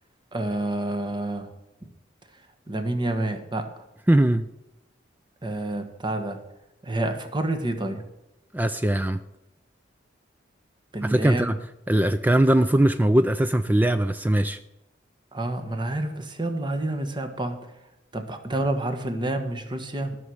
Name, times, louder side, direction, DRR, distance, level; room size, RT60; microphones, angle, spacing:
voice 1, 0.3-1.5 2.7-3.7 5.4-6.4 6.8-8.0 10.9-11.5 15.3-17.7 18.1-20.2, right 1 dB, 25° right, 7 dB, 1.2 m, -28 dB
voice 2, 4.1-4.5 8.5-9.2 11.0-11.5 11.9-14.6, right 1 dB, 10° right, 10 dB, 0.4 m, -20 dB
13.5 x 6.3 x 7.8 m, 0.92 s
head